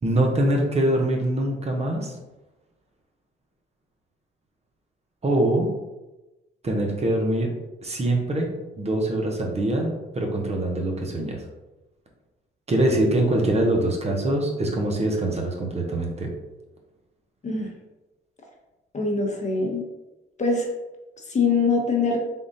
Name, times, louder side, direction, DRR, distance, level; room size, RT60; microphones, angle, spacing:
voice 1, 0.0-2.1 5.2-5.7 6.6-7.5 7.8-11.4 12.7-16.3, right 1 dB, 30° right, 1 dB, 0.8 m, -23 dB
voice 2, 18.9-19.8 20.4-20.7 21.3-22.2, left 4 dB, 35° left, 1 dB, 0.9 m, -23 dB
3.6 x 2.4 x 3.9 m, 1.0 s
cardioid pair, 90°, 20 cm